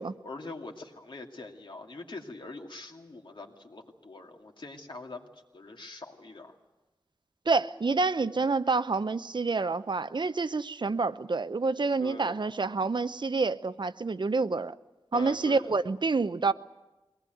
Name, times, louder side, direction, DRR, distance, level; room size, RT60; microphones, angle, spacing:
voice 1, 0.2-5.3 5.5-6.5 12.0-12.4 15.1-15.8, left 2 dB, 65° left, 2.5 m, -43 dB
voice 2, 7.5-14.7 15.1-16.5, right 4 dB, 60° right, 0.8 m, -28 dB
22.5 x 18.5 x 9.2 m
wide cardioid pair, 65°, 9 cm